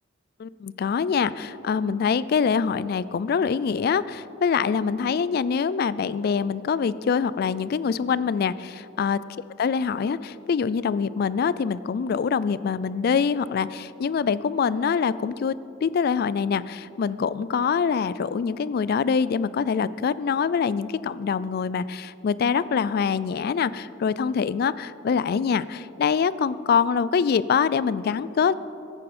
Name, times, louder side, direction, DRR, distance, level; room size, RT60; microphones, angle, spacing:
voice 1, 0.4-9.2 9.6-28.5, left 6 dB, 50° left, 17 dB, 0.3 m, -24 dB
15.5 x 9.1 x 4.3 m, 2.7 s
head